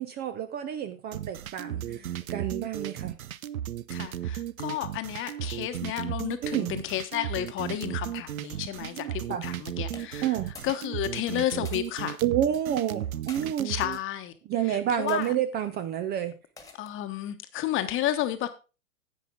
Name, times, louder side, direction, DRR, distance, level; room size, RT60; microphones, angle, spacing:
voice 1, 0.0-3.2 6.4-6.7 8.8-9.4 10.2-10.5 12.2-13.7 14.5-16.4, right 10 dB, 25° right, 0.6 m, -29 dB
sound 1, 1.1-14.0, right 11 dB, 75° right, 0.7 m, -35 dB
voice 2, 1.7-2.1 3.9-10.3 10.6-12.2 13.6-14.3 14.7-15.3 16.8-18.5, left 12 dB, 30° left, 1.2 m, -32 dB
sound 2, 9.9-10.8 11.1-12.0 12.9-13.4 14.2-14.5 15.1-15.3 16.6-17.0, left 3 dB, 10° left, 1.6 m, -48 dB
10.5 x 8.3 x 3.7 m
hypercardioid pair, 105°, 42 cm